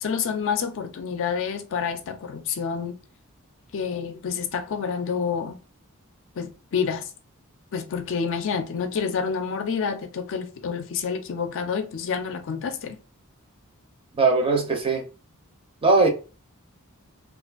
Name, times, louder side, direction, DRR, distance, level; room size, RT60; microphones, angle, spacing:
voice 1, 0.0-3.0 3.7-5.6 6.4-7.1 7.7-13.0, left 6 dB, 60° left, 0.4 m, -28 dB
voice 2, 14.2-15.0 15.8-16.1, right 3 dB, 25° right, 0.5 m, -19 dB
2.5 x 2.4 x 2.3 m
head